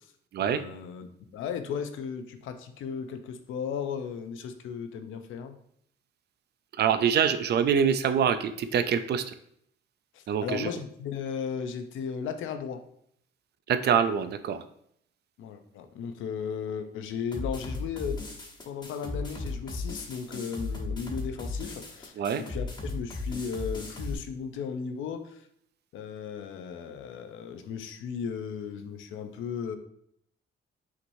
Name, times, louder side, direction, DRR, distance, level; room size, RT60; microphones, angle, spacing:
voice 1, 0.4-1.1 1.3-5.6 10.1-12.8 15.4-18.2 18.7-25.4 25.9-29.8, left 6 dB, 80° left, 7 dB, 0.6 m, -36 dB
voice 2, 6.8-9.2 10.3-10.7 13.7-14.6 22.2-22.4, right 7 dB, 55° right, 10 dB, 0.4 m, -25 dB
sound 1, 17.3-24.1, left 3 dB, 20° left, 1.2 m, -36 dB
5.9 x 3.0 x 2.7 m, 0.70 s
cardioid pair, 90°, 20 cm